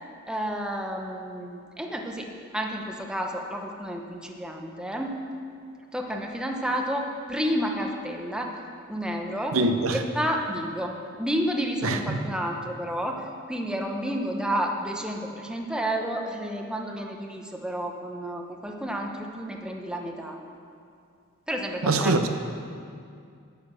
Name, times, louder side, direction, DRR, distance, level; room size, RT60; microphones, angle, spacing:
voice 1, 0.3-5.2 5.9-8.5 8.9-9.6 9.9-20.4 21.5-22.4, equal, 5° right, 2 dB, 0.8 m, -31 dB
voice 2, 9.5-10.0 11.8-12.2 21.8-22.2, right 2 dB, 80° right, 7 dB, 0.7 m, -23 dB
11.0 x 6.8 x 6.1 m, 2.4 s
head